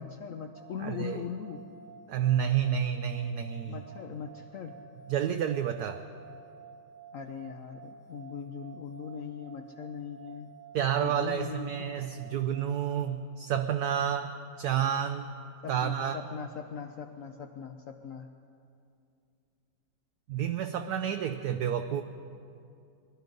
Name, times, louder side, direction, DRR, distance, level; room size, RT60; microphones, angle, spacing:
voice 1, 0.0-1.6 3.7-4.8 7.1-10.5 11.0-12.2 15.6-18.3, left 6 dB, 65° left, 5 dB, 0.8 m, -40 dB
sound 1, 0.5-12.7, right 5 dB, 15° left, 1.1 m, -52 dB
voice 2, 0.8-1.2 2.1-3.8 5.1-6.0 10.7-15.3 15.7-16.2 20.3-22.0, right 9 dB, 70° right, 7 dB, 1.0 m, -30 dB
21.5 x 12.5 x 5.3 m, 2.5 s
omnidirectional pair, 2.0 m